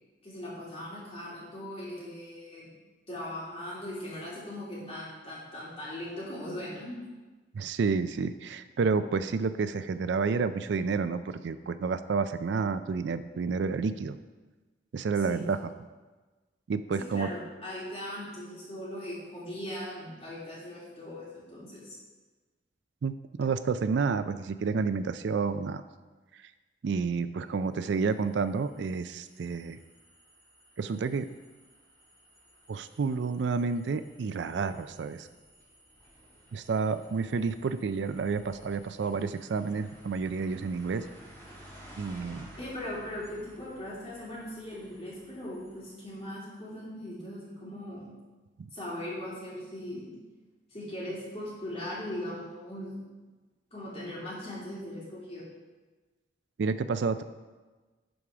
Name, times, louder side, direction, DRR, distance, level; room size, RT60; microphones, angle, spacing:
voice 1, 0.2-2.7 3.1-7.0 15.2-15.5 17.0-22.0 42.6-48.1 48.7-50.2 50.7-53.0 53.7-55.4, left 1 dB, 30° left, -7 dB, 3.0 m, -39 dB
voice 2, 7.5-14.2 14.9-15.6 16.7-17.3 23.0-25.8 26.3-26.5 26.8-29.8 30.8-31.3 32.7-35.3 36.5-41.1 42.0-42.4 48.6-48.7 56.6-57.2, right 5 dB, 65° right, 12 dB, 0.4 m, -30 dB
sound 1, 27.9-46.4, equal, 10° left, 2.2 m, -55 dB
11.0 x 4.8 x 4.9 m, 1.3 s
head